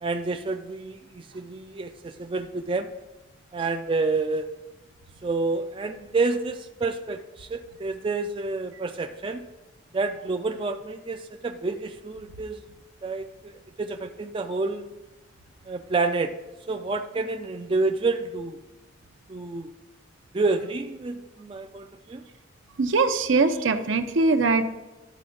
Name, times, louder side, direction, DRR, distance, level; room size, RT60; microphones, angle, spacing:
voice 1, 0.0-2.9 3.5-4.5 5.2-9.4 9.9-12.6 13.0-14.9 15.7-16.3 16.7-18.6 19.3-19.7 20.3-22.2, right 3 dB, 25° right, 6 dB, 0.3 m, -29 dB
voice 2, 22.8-24.6, right 3 dB, 75° right, 7 dB, 0.7 m, -21 dB
12.0 x 4.3 x 3.8 m, 1.1 s
head